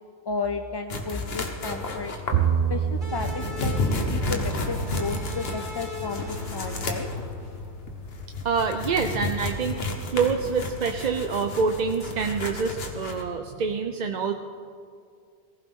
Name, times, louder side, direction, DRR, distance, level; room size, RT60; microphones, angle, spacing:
voice 1, 0.3-2.1 2.7-4.4 4.7-7.1, left 4 dB, 40° left, 5 dB, 0.4 m, -33 dB
sound 1, 0.9-13.2, left 3 dB, 70° left, 1.5 m, -32 dB
Bowed string instrument, 2.3-8.7, right 8 dB, 80° right, 0.9 m, -31 dB
sound 2, 3.0-8.3, left 2 dB, 5° right, 3.9 m, -38 dB
voice 2, 8.4-14.3, right 5 dB, 50° right, 5 dB, 0.7 m, -26 dB
18.5 x 15.5 x 3.6 m, 2.3 s
omnidirectional pair, 1.1 m